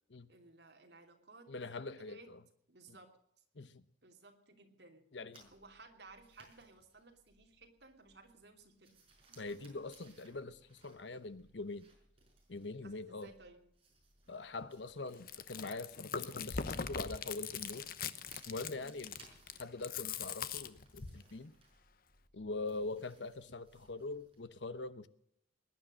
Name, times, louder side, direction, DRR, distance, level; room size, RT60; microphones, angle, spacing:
voice 1, 0.3-1.5 2.0-2.3 2.7-3.1 4.0-5.0 5.5-8.9 9.3-9.7 12.8-13.6 18.7-18.9, right 3 dB, 65° right, 3.0 m, -58 dB
voice 2, 1.5-2.4 2.9-3.0 3.5-3.8 5.1-5.5 9.4-11.9 12.5-13.3 14.3-17.9 18.5-19.2 19.6-21.5 22.3-25.1, left 3 dB, 80° left, 1.0 m, -43 dB
sound 1, 5.3-24.5, right 3 dB, 30° right, 5.8 m, -66 dB
Chewing mastication, 15.1-21.2, left 6 dB, 55° left, 0.9 m, -41 dB
20.5 x 10.5 x 6.4 m
head